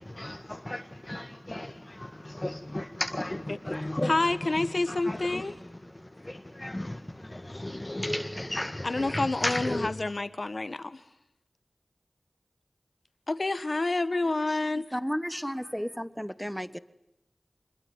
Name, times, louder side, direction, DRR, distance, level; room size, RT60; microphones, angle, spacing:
voice 1, 0.0-9.9, left 1 dB, 25° left, 1.8 m, -35 dB
voice 2, 4.0-5.5 8.8-11.0 13.3-14.9, left 2 dB, 60° left, 1.4 m, -28 dB
voice 3, 14.9-16.8, equal, ahead, 1.3 m, -33 dB
26.0 x 22.0 x 9.7 m
wide cardioid pair, 50°, 0 cm